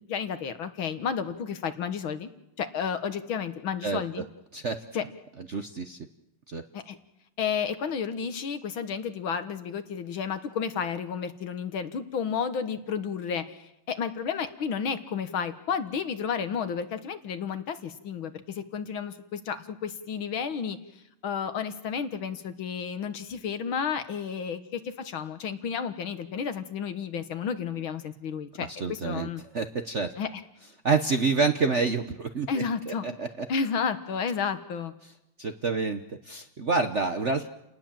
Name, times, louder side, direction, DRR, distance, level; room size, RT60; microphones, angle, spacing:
voice 1, 0.1-2.3 2.6-4.3 4.9-5.0 6.7-7.0 7.4-20.8 21.2-29.4 30.2-30.4 32.5-33.1 33.5-34.9, left 6 dB, 70° left, 10 dB, 2.1 m, -32 dB
voice 2, 4.5-4.8 5.5-6.0 6.5-6.6 28.8-29.3 29.5-30.1 30.8-33.5 35.4-37.5, right 4 dB, 45° right, 7 dB, 1.0 m, -28 dB
30.0 x 19.0 x 7.5 m, 0.88 s
omnidirectional pair, 2.4 m